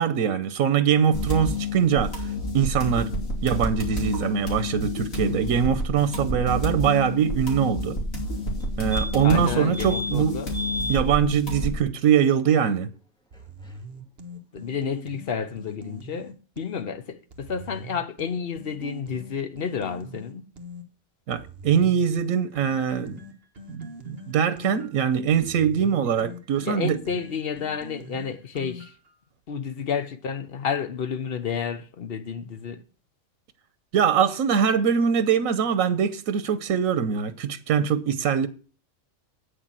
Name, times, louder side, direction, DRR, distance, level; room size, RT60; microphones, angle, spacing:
voice 1, 0.0-2.3 2.5-3.1 3.4-8.0 8.8-10.4 10.9-12.9 21.3-23.2 23.7-27.0 33.9-38.5, right 8 dB, 90° right, 1.2 m, -23 dB
sound 1, 1.1-11.8, left 1 dB, 80° left, 3.3 m, -29 dB
sound 2, 8.6-8.7 8.9-9.4 9.7-10.1 10.5-11.0 13.4-13.5 13.6-13.7, equal, 5° left, 1.9 m, -32 dB
voice 2, 9.2-10.6 14.5-20.4 26.6-28.9 29.5-32.8, left 6 dB, 50° left, 1.0 m, -31 dB
sound 3, 13.3-16.8 17.3-20.8 21.3-29.1, equal, 50° right, 1.4 m, -42 dB
8.6 x 6.7 x 7.4 m
omnidirectional pair, 1.4 m